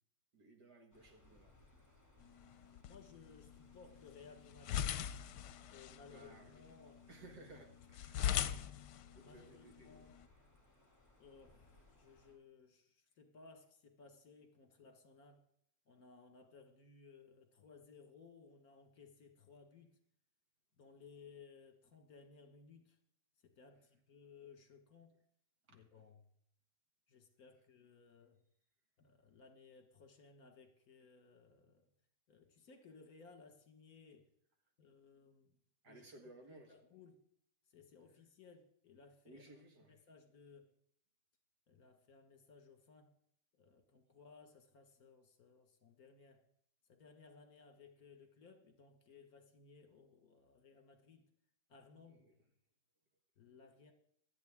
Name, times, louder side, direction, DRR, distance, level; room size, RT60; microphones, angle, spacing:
voice 1, 0.3-1.6 6.1-6.6 7.1-8.6 9.1-10.1 25.7-25.8 35.8-36.8 39.2-40.0 52.1-52.4 53.5-53.6, right 2 dB, 75° right, 2.3 m, -59 dB
sound 1, 0.9-12.4, left 2 dB, 10° left, 2.5 m, -68 dB
sound 2, 2.2-10.2, left 10 dB, 80° left, 1.3 m, -43 dB
voice 2, 2.8-5.1 5.7-7.1 9.2-10.2 11.2-15.4 15.9-20.0 20.8-23.0 23.4-25.2 25.7-26.2 27.1-28.4 29.0-31.9 32.3-34.3 34.8-35.6 35.9-37.2 37.7-39.5 39.9-40.7 41.7-43.1 43.5-46.4 46.9-51.3 51.7-52.3 53.4-53.9, left 5 dB, 60° left, 2.1 m, -61 dB
25.0 x 8.5 x 3.7 m
omnidirectional pair, 1.8 m